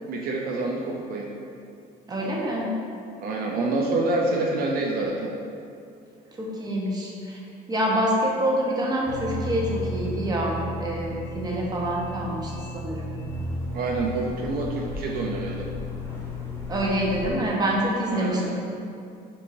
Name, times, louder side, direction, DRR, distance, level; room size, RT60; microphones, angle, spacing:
voice 1, 0.1-1.3 3.2-5.3 13.7-15.7 18.1-18.5, right 2 dB, 60° right, -1 dB, 0.5 m, -27 dB
voice 2, 2.1-2.7 6.4-7.4 7.7-13.1 16.7-18.5, equal, 25° right, -3 dB, 0.9 m, -26 dB
sound 1, 9.1-17.3, left 1 dB, 15° left, 0.9 m, -34 dB
7.4 x 2.7 x 2.6 m, 2.5 s
cardioid pair, 110°, 17 cm